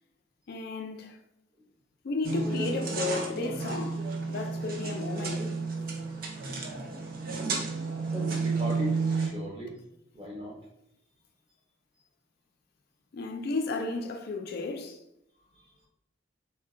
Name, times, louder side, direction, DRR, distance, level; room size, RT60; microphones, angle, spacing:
voice 1, 0.5-1.2 2.0-5.5 6.7-6.8 13.1-15.0, left 3 dB, 55° left, 0.4 m, -34 dB
sound 1, 2.2-9.3, right 4 dB, 50° right, 0.5 m, -31 dB
voice 2, 8.1-9.7 10.1-10.5, equal, 30° right, 0.9 m, -37 dB
2.3 x 2.1 x 3.7 m
head